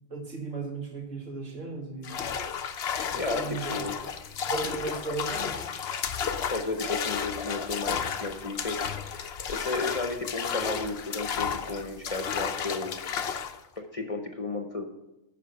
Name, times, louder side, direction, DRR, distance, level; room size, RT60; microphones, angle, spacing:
voice 1, 0.1-2.3 3.3-3.7 4.4-5.6, right 4 dB, 70° right, 0 dB, 2.3 m, -35 dB
sound 1, 2.0-13.6, left 7 dB, 60° left, 0.9 m, -32 dB
voice 2, 3.1-4.0 6.5-13.0 13.8-14.9, left 3 dB, 30° left, 4 dB, 0.9 m, -33 dB
9.0 x 6.1 x 7.0 m, 0.97 s
omnidirectional pair, 1.4 m